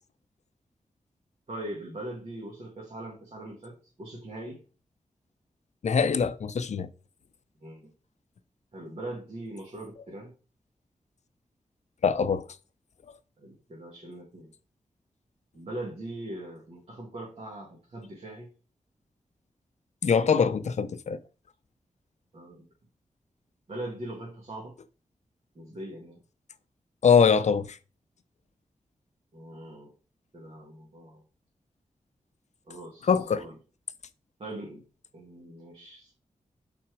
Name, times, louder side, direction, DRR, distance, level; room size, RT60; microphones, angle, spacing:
voice 1, 1.5-4.6 7.6-7.9 8.7-10.3 13.4-14.5 15.5-18.5 22.3-22.7 23.7-24.7 25.6-26.2 29.3-29.9 30.3-31.2 32.7-33.6 34.4-34.8 35.1-36.1, right 1 dB, 50° right, 1.9 m, -41 dB
voice 2, 5.8-6.9 12.0-12.5 20.0-21.2 27.0-27.8 33.1-33.4, left 6 dB, 65° left, 0.5 m, -23 dB
5.9 x 4.3 x 4.8 m
wide cardioid pair, 105°, 13 cm